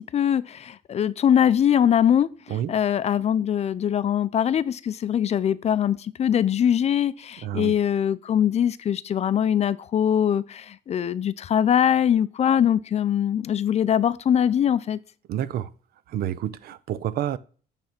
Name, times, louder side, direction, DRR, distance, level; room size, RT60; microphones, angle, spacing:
voice 1, 0.0-15.0, left 9 dB, 40° left, 0.5 m, -22 dB
voice 2, 7.4-7.7 15.3-15.7 16.1-17.4, right 11 dB, 65° right, 0.6 m, -29 dB
8.9 x 3.5 x 5.9 m
cardioid pair, 110°, 17 cm